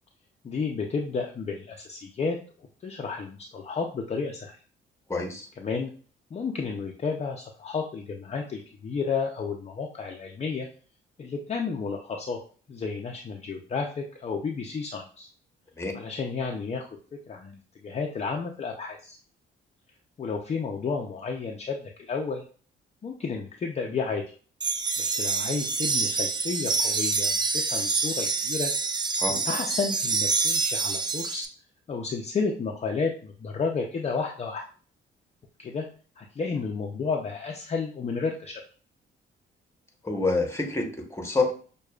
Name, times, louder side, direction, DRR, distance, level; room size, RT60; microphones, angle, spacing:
voice 1, 0.4-4.6 5.6-5.9 6.3-10.7 11.2-12.4 12.7-15.3 15.9-16.9 17.3-19.2 20.2-22.4 23.0-24.2 25.0-28.7 29.3-31.5 31.9-34.6 35.6-35.9 36.2-38.6, left 5 dB, 35° left, 0 dB, 0.5 m, -32 dB
voice 2, 5.1-5.5 15.8-15.9 29.2-29.4 40.0-41.5, left 3 dB, 15° left, 3 dB, 1.0 m, -27 dB
sound 1, 24.6-31.5, right 4 dB, 20° right, 0.4 m, -27 dB
6.3 x 2.3 x 2.3 m, 0.40 s
cardioid pair, 90°, 20 cm